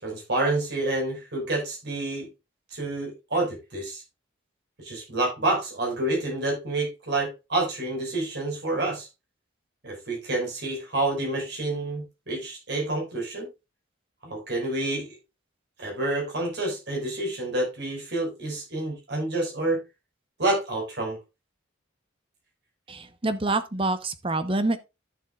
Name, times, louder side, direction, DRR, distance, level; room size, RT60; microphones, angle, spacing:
voice 1, 0.0-2.3 2.7-4.0 4.8-9.1 9.8-13.5 14.2-15.1 15.8-19.8 20.4-21.2, right 2 dB, 60° right, 5.3 m, -28 dB
voice 2, 22.9-24.8, right 2 dB, 30° right, 0.9 m, -26 dB
12.0 x 7.3 x 2.4 m
head